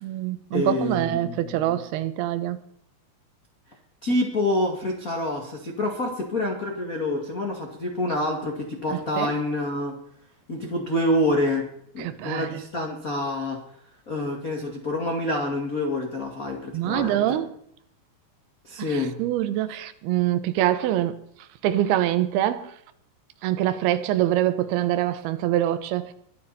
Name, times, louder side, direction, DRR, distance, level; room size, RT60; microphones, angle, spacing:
voice 1, 0.0-2.6 8.9-9.3 12.0-12.5 16.7-17.5 19.2-21.2 21.6-22.7 23.4-26.1, right 13 dB, 75° right, 2.6 m, -24 dB
voice 2, 0.5-1.8 4.0-9.9 10.5-11.6 11.9-13.6 14.1-17.4 18.6-19.1 19.7-19.8, left 1 dB, 35° left, 1.4 m, -27 dB
23.0 x 11.5 x 4.2 m
omnidirectional pair, 5.1 m